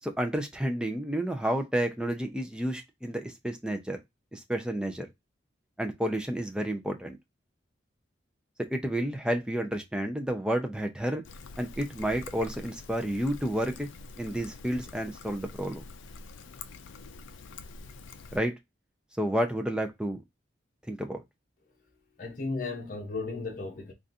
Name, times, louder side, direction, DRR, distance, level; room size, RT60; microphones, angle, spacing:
voice 1, 0.0-4.0 4.3-5.1 5.8-7.2 8.7-11.2 11.6-13.9 14.2-15.8 18.3-18.5 19.2-20.2 20.9-21.2, right 1 dB, 5° right, 0.4 m, -30 dB
Trickle dribble, 11.2-18.4, left 4 dB, 80° left, 0.4 m, -46 dB
voice 2, 22.2-23.9, left 3 dB, 45° left, 0.8 m, -35 dB
3.7 x 2.4 x 2.6 m
head